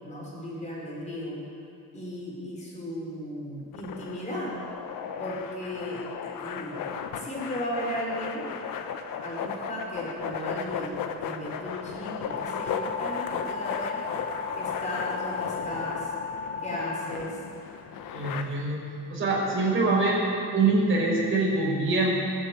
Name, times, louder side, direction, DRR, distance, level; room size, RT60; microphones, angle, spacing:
voice 1, 0.0-1.4 1.9-4.5 5.2-8.5 9.2-10.9 11.2-14.0 14.5-16.1 16.6-17.4, equal, 20° left, -4 dB, 4.8 m, -36 dB
sound 1, 3.7-18.4, left 7 dB, 75° left, 1.1 m, -35 dB
sound 2, 12.3-17.1, left 5 dB, 40° left, 1.2 m, -35 dB
voice 2, 18.1-18.8 19.1-20.2 20.5-22.1, right 3 dB, 35° right, -4 dB, 5.1 m, -24 dB
20.0 x 7.6 x 8.4 m, 2.5 s
cardioid pair, 145°, 34 cm